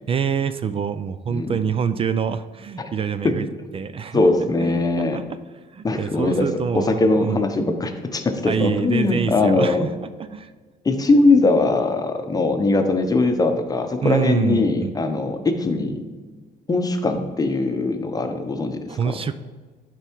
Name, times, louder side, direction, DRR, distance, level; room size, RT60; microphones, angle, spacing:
voice 1, 0.1-3.5 3.7-4.2 4.6-5.4 5.7-7.5 8.4-9.9 10.2-10.5 14.0-14.9 18.9-19.4, right 7 dB, 35° right, 12 dB, 0.4 m, -25 dB
voice 2, 4.1-5.2 5.8-6.5 6.7-9.8 10.8-16.0 16.7-19.0, left 2 dB, 20° left, 6 dB, 0.9 m, -20 dB
10.5 x 4.5 x 4.6 m, 1.4 s
cardioid pair, 110°, 17 cm